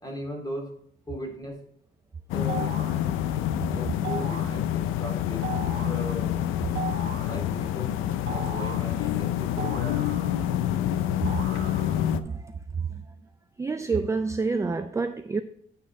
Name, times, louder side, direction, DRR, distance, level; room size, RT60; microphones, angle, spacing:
voice 1, 0.0-0.7 1.1-1.6 2.3-2.7 3.7-6.3 7.3-8.0 8.3-10.1 12.8-13.2, equal, 20° left, 2.3 m, -38 dB
sound 1, 2.3-12.2, left 11 dB, 90° left, 0.5 m, -27 dB
sound 2, 2.5-3.0 4.0-4.6 5.4-6.0 6.7-7.4 8.3-8.9 9.6-10.5 11.3-12.1, right 5 dB, 65° right, 1.2 m, -37 dB
voice 2, 11.9-12.6 13.6-15.4, right 4 dB, 15° right, 0.4 m, -28 dB
10.5 x 3.7 x 4.2 m
cardioid pair, 90°, 20 cm